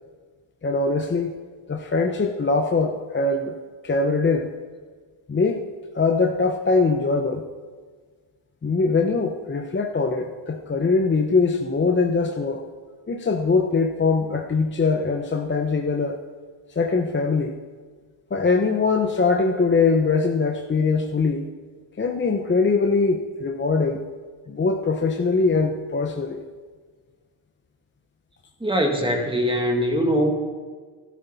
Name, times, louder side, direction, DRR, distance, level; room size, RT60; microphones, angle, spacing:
voice 1, 0.6-1.4 1.7-3.5 3.8-4.5 5.3-5.6 5.9-7.4 8.6-12.6 13.1-16.2 16.7-17.6 18.3-21.5 22.0-24.1 24.5-26.4, left 4 dB, 25° left, 3 dB, 0.8 m, -22 dB
voice 2, 28.6-30.3, equal, 10° right, 1 dB, 1.9 m, -22 dB
13.5 x 12.0 x 4.2 m, 1.5 s
cardioid pair, 90°, 50 cm